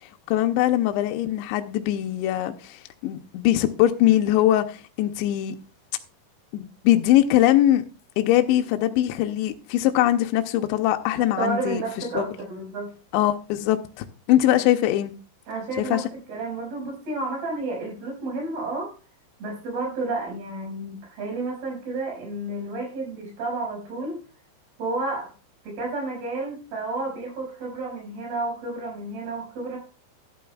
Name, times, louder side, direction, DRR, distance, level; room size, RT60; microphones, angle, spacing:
voice 1, 0.0-5.6 6.5-7.8 8.2-11.8 12.1-12.3 13.1-15.1 15.8-16.0, left 13 dB, 80° left, 2.8 m, -22 dB
voice 2, 11.4-12.9 15.5-18.9 19.4-24.2 24.8-25.3 25.6-29.8, right 2 dB, 55° right, 7.3 m, -31 dB
12.5 x 11.0 x 2.3 m
omnidirectional pair, 5.4 m